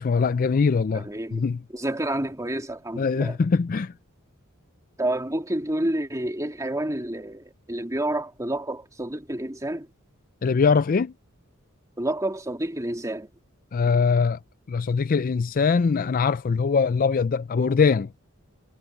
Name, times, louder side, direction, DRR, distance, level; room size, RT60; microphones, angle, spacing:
voice 1, 0.0-1.6 3.0-3.9 10.4-11.1 13.7-14.4 14.7-18.1, left 5 dB, 40° left, 0.4 m, -22 dB
voice 2, 0.9-1.4 1.7-3.4 5.0-9.9 12.0-13.3, right 1 dB, 15° right, 2.8 m, -29 dB
head